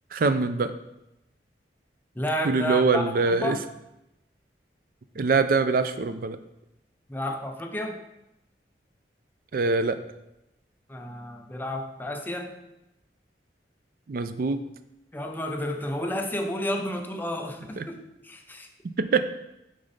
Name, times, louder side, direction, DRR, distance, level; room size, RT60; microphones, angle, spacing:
voice 1, 0.1-0.7 2.4-3.6 5.2-6.4 9.5-10.0 14.1-14.6 17.8-17.9 19.0-19.2, right 4 dB, 50° right, 11 dB, 0.4 m, -23 dB
voice 2, 2.2-3.6 7.1-8.0 10.9-12.6 15.1-18.7, equal, 10° left, 4 dB, 0.5 m, -31 dB
6.4 x 4.0 x 4.1 m, 0.89 s
head